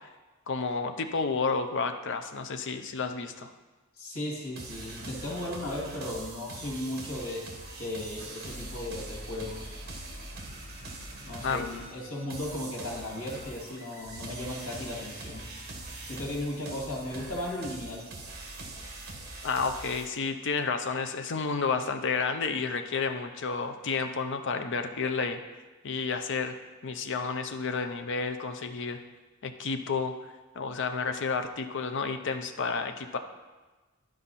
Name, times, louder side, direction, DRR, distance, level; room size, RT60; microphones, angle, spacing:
voice 1, 0.5-3.5 11.4-11.6 19.4-25.4 25.8-26.5 26.8-29.0 29.4-33.2, left 4 dB, 60° left, 7 dB, 0.7 m, -31 dB
voice 2, 4.0-7.4 7.8-9.8 11.2-15.4 16.1-18.1, left 1 dB, 80° left, -2 dB, 2.3 m, -36 dB
sound 1, 4.6-20.0, right 2 dB, 50° right, 1.4 m, -42 dB
11.5 x 5.0 x 4.2 m, 1.2 s
head